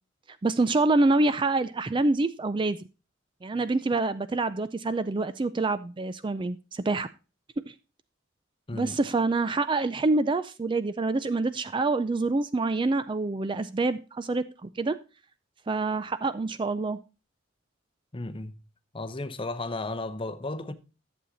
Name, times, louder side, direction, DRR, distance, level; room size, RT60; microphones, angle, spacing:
voice 1, 0.4-2.8 3.4-7.1 8.7-15.0 15.7-17.0, right 3 dB, 25° right, 0.4 m, -26 dB
voice 2, 8.7-9.0 18.1-18.6 18.9-20.7, left 2 dB, 25° left, 0.8 m, -34 dB
11.0 x 7.3 x 4.0 m
head